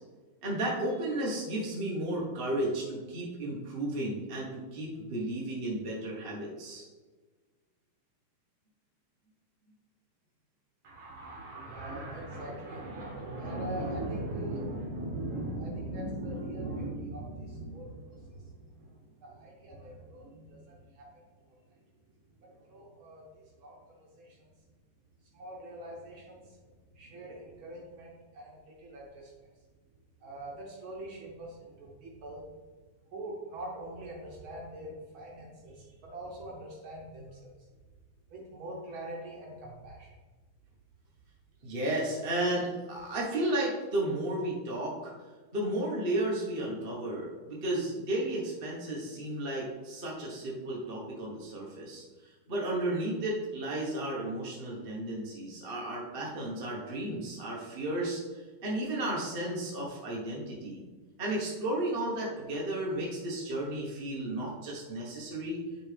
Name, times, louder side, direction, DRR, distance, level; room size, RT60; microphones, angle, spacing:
voice 1, 0.4-6.8 41.6-45.1 45.5-60.8 61.2-65.6, right 1 dB, 35° right, -4 dB, 1.0 m, -33 dB
voice 2, 10.8-21.2 22.4-24.4 25.3-26.6 26.9-29.3 30.2-32.5 33.1-37.5 38.3-40.1, right 1 dB, 70° right, -3 dB, 1.9 m, -41 dB
10.0 x 3.5 x 3.3 m, 1.3 s
omnidirectional pair, 2.3 m